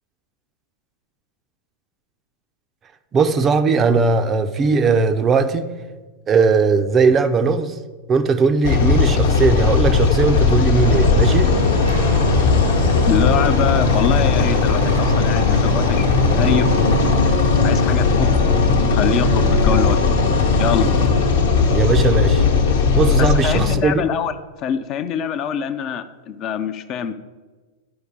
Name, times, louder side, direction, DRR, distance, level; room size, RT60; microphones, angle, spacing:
voice 1, 3.1-5.7 6.3-7.7 8.1-11.5 21.7-22.4 22.9-24.0, right 4 dB, 25° right, 9 dB, 0.5 m, -18 dB
sound 1, 8.6-23.8, left 5 dB, 60° left, 1.0 m, -17 dB
sound 2, 10.8-17.2, equal, 90° right, 1.9 m, -25 dB
voice 2, 13.1-16.7 17.6-20.2 20.6-20.9 23.2-27.1, left 8 dB, 35° left, 10 dB, 0.5 m, -24 dB
sound 3, 16.5-23.8, left 2 dB, 90° left, 0.7 m, -25 dB
11.5 x 4.9 x 4.7 m, 1.3 s
figure-of-eight pair, 90°, 0 cm